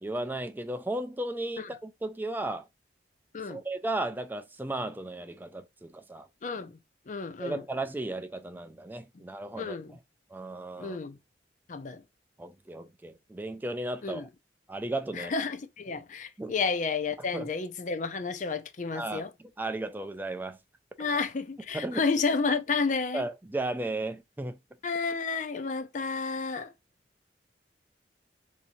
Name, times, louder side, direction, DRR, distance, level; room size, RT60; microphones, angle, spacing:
voice 1, 0.0-2.7 3.5-6.3 7.4-9.8 10.3-11.0 12.4-14.3 14.7-15.3 16.4-16.5 17.3-17.4 18.9-19.2 19.6-20.6 21.7-22.0 23.1-24.6, right 2 dB, 10° right, 0.4 m, -35 dB
voice 2, 6.4-6.8 7.1-7.6 9.5-10.0 10.8-11.2 11.7-12.0 14.0-14.3 15.1-19.3 21.0-23.2 24.8-26.7, left 4 dB, 45° left, 0.5 m, -31 dB
2.8 x 2.6 x 4.2 m
head